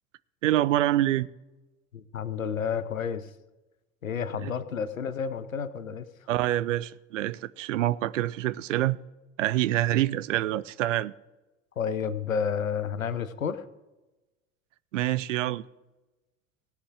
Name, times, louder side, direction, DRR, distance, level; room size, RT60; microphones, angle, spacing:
voice 1, 0.4-1.3 4.4-4.5 6.3-9.0 9.4-11.1 14.9-15.6, right 14 dB, 65° right, 0.5 m, -26 dB
voice 2, 1.9-3.3 4.0-6.1 11.8-13.6, left 7 dB, 80° left, 0.8 m, -30 dB
18.0 x 7.0 x 4.7 m
figure-of-eight pair, 70°, 40 cm